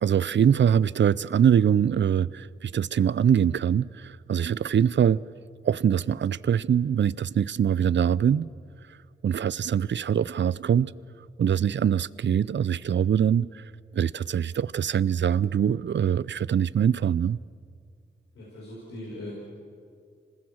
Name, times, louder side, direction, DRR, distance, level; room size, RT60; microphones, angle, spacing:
voice 1, 0.0-5.2 5.6-8.5 9.2-10.9 11.4-13.7 13.9-17.4, right 8 dB, 60° right, 0.5 m, -23 dB
voice 2, 18.3-19.4, left 1 dB, 85° left, 6.1 m, -39 dB
26.0 x 19.5 x 7.3 m
cardioid pair, 45°, 21 cm